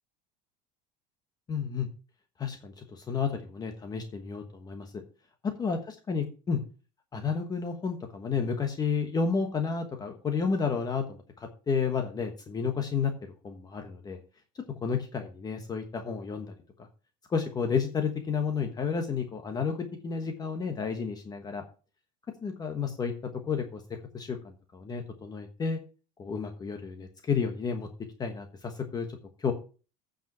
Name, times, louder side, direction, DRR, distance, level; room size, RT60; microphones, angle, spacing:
voice 1, 1.5-1.9 2.4-5.0 5.6-6.6 7.1-14.2 14.8-16.9 17.3-21.6 22.4-23.1 23.5-23.8 24.1-25.8 26.2-27.9 28.2-29.1 29.4-29.5, left 5 dB, 20° left, 5 dB, 1.2 m, -31 dB
9.0 x 5.1 x 7.7 m, 0.36 s
cardioid pair, 160°, 20 cm